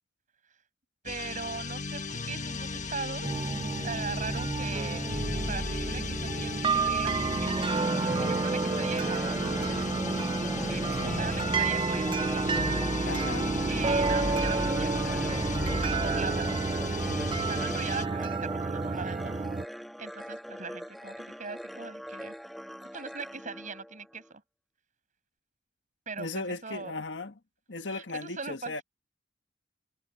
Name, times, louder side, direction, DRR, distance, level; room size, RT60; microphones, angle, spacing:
voice 1, 1.0-3.5 3.8-5.1 5.5-9.4 10.7-12.4 13.7-15.4 15.8-16.5 17.4-19.3 20.0-22.3 22.9-24.4 26.1-26.9 27.9-28.8, right 5 dB, 45° right, 7.3 m, -40 dB
sound 1, 1.1-18.1, left 3 dB, 45° left, 1.4 m, -35 dB
sound 2, 3.2-19.6, right 4 dB, 30° right, 0.4 m, -30 dB
sound 3, 7.6-24.3, equal, ahead, 1.4 m, -43 dB
voice 2, 13.0-13.6 26.2-27.4 27.7-28.8, left 3 dB, 70° left, 1.5 m, -37 dB
head